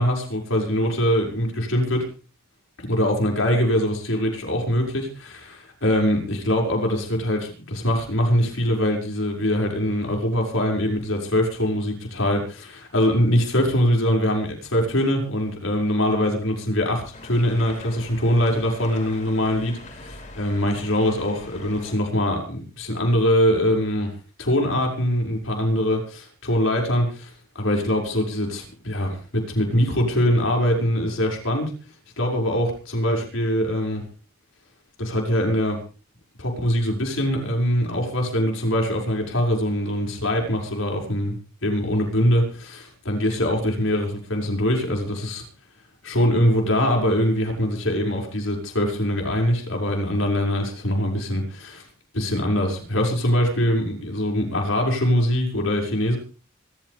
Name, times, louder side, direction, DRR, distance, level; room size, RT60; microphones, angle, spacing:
voice 1, 0.0-2.0 2.8-24.1 24.4-31.7 32.2-34.0 35.0-35.8 36.4-41.4 41.6-45.4 46.0-51.8 52.1-56.2, equal, 65° left, 0 dB, 6.1 m, -23 dB
sound 1, 17.1-21.9, left 2 dB, 35° left, 5.9 m, -42 dB
25.5 x 14.0 x 3.5 m, 0.39 s
head